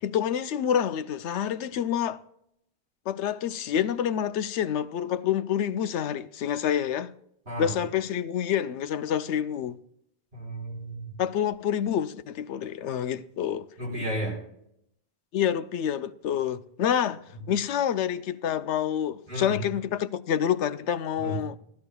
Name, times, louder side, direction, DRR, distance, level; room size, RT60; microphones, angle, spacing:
voice 1, 0.0-2.2 3.1-7.1 7.6-9.8 11.2-13.6 15.3-17.2 17.5-21.6, left 9 dB, 85° left, 0.9 m, -27 dB
voice 2, 10.3-11.0 13.8-14.4 19.3-19.6 21.2-21.4, right 1 dB, 60° right, 4.1 m, -32 dB
15.0 x 12.5 x 2.3 m
omnidirectional pair, 1.1 m